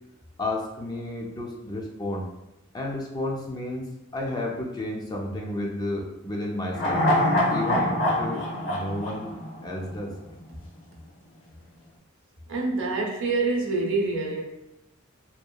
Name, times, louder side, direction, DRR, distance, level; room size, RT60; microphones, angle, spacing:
voice 1, 0.4-2.4 2.7-7.0 7.5-10.2, left 1 dB, 20° left, -1 dB, 0.3 m, -32 dB
sound 1, 6.7-10.1 10.4-10.5, left 1 dB, 65° left, 0.6 m, -25 dB
voice 2, 12.5-14.4, right 3 dB, 65° right, 0 dB, 0.5 m, -26 dB
2.8 x 2.2 x 2.2 m, 0.91 s
head